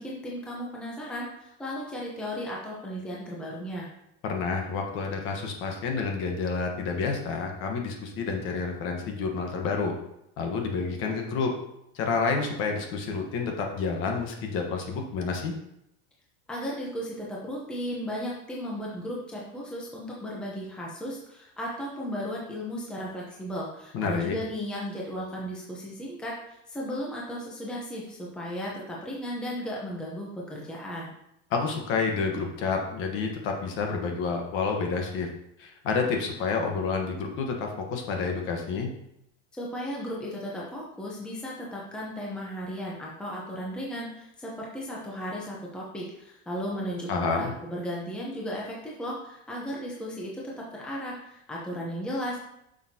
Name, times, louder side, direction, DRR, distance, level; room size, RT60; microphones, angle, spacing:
voice 1, 0.0-3.9 16.5-31.1 39.5-52.4, equal, 5° left, -4 dB, 0.8 m, -35 dB
voice 2, 4.2-9.9 10.4-11.5 11.9-15.5 23.9-24.4 31.5-35.3 35.6-38.9 47.1-47.5, left 4 dB, 40° left, 2 dB, 1.2 m, -29 dB
8.3 x 6.4 x 2.9 m, 0.80 s
supercardioid pair, 175°, 32 cm